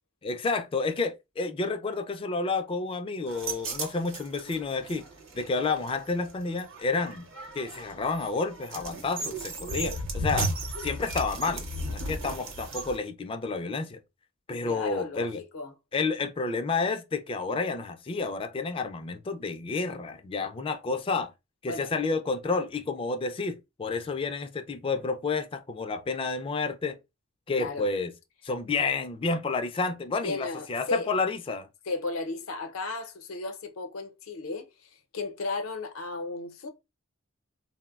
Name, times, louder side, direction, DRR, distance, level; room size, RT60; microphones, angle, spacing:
voice 1, 0.2-5.0 5.3-7.3 7.5-10.5 10.8-11.7 11.9-14.0 14.5-15.4 15.9-21.3 21.6-27.0 27.5-28.1 28.4-31.7, left 4 dB, 25° left, 0.3 m, -30 dB
sound 1, 3.3-13.0, right 1 dB, 65° right, 0.8 m, -35 dB
voice 2, 14.7-15.7 21.7-21.9 27.6-27.9 30.2-31.1 31.9-36.7, left 3 dB, 75° left, 0.6 m, -35 dB
3.7 x 2.0 x 2.3 m
head